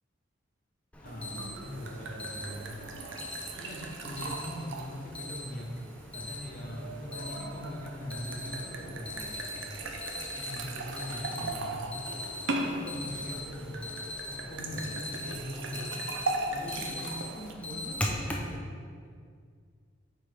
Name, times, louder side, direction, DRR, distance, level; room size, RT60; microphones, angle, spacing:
Alarm, 0.9-18.5, left 1 dB, 5° left, 0.5 m, -41 dB
voice 1, 1.0-2.8 3.6-5.7 6.1-9.4 10.4-11.9 12.6-13.9 14.3-16.0 16.5-18.6, left 1 dB, 40° left, -1 dB, 1.0 m, -41 dB
sound 1, 1.1-17.5, right 2 dB, 70° right, 0.6 m, -39 dB
8.0 x 4.6 x 3.4 m, 2.1 s
head